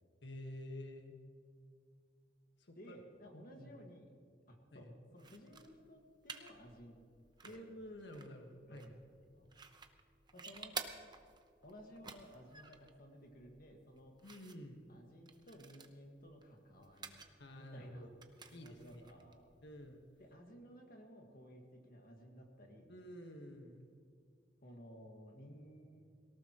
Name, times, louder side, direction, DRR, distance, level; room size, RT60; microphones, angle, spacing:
voice 1, 0.2-1.1 2.6-2.9 3.3-3.7 4.7-4.9 7.4-8.9 14.2-14.8 17.4-18.1 18.5-19.0 19.6-20.0 22.9-23.9, left 1 dB, 70° left, 3 dB, 1.5 m, -50 dB
voice 2, 2.8-4.1 4.5-7.0 7.4-7.6 8.7-9.0 9.3-9.5 10.3-10.8 11.6-14.2 14.9-17.2 17.5-18.1 18.6-19.5 20.2-22.9 24.6-26.0, equal, 50° left, 2 dB, 1.8 m, -56 dB
sound 1, 5.2-20.3, right 5 dB, 25° right, 0.9 m, -53 dB
18.5 x 18.0 x 3.0 m, 2.3 s
head